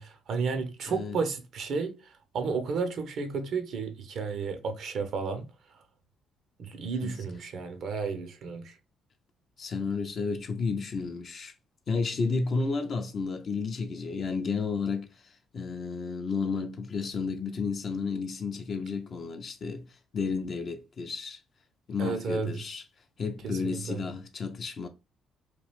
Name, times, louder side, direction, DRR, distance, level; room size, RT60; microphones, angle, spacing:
voice 1, 0.0-2.0 2.3-5.5 6.6-8.8 22.0-22.5 23.4-24.0, right 5 dB, 60° right, 0.6 m, -32 dB
voice 2, 0.9-1.2 7.0-7.2 9.6-11.5 11.9-21.4 21.9-22.8 23.2-24.9, left 4 dB, 50° left, 0.4 m, -32 dB
2.9 x 2.4 x 3.1 m
hypercardioid pair, 45°, 0 cm